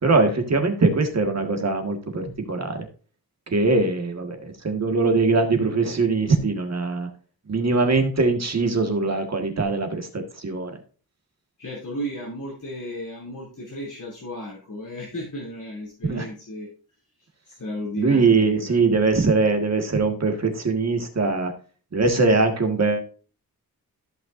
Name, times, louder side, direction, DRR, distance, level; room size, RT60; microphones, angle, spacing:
voice 1, 0.0-2.9 3.5-7.1 7.5-10.8 16.0-16.3 18.0-21.5 21.9-23.0, right 3 dB, 45° right, 5 dB, 1.7 m, -22 dB
voice 2, 11.6-16.7 17.5-18.8, equal, 55° left, -5 dB, 3.0 m, -34 dB
14.5 x 5.8 x 2.6 m, 0.38 s
wide cardioid pair, 160°, 37 cm